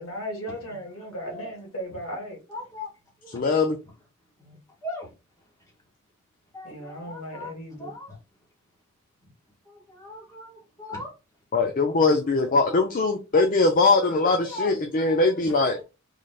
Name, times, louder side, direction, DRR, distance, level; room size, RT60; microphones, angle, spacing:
voice 1, 0.0-2.4 6.6-7.9, equal, 70° left, 1.6 m, -36 dB
voice 2, 2.5-2.9 3.2-3.4 4.4-4.6 4.8-5.1 6.5-7.5 7.8-8.2 9.7-11.1 11.9-12.0 12.6-12.9 13.8-15.7, left 1 dB, 15° left, 1.8 m, -39 dB
voice 3, 3.3-3.8 11.5-15.8, left 3 dB, 40° left, 0.5 m, -21 dB
3.9 x 3.2 x 2.3 m
head